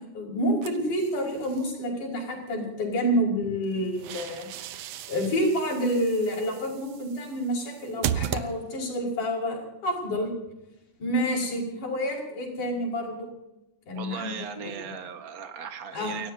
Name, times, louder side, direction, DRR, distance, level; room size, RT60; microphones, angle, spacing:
voice 1, 0.0-4.5 5.1-10.3 11.0-13.3 13.9-14.7 15.9-16.2, equal, 85° left, -4 dB, 7.0 m, -28 dB
sound 1, 0.6-1.7 3.6-9.0, right 10 dB, 70° right, 1.8 m, -36 dB
voice 2, 13.9-16.3, right 7 dB, 40° right, 6 dB, 1.4 m, -37 dB
29.5 x 17.5 x 2.8 m, 0.93 s
omnidirectional pair, 3.4 m